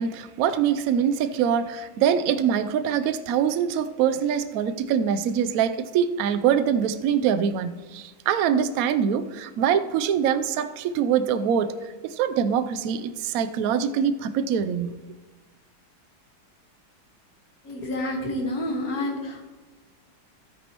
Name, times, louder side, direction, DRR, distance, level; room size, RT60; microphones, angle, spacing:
voice 1, 0.0-15.0, right 8 dB, 70° right, 0.8 m, -24 dB
voice 2, 17.6-19.5, left 1 dB, 50° left, 2.0 m, -29 dB
12.5 x 9.6 x 3.0 m
omnidirectional pair, 2.0 m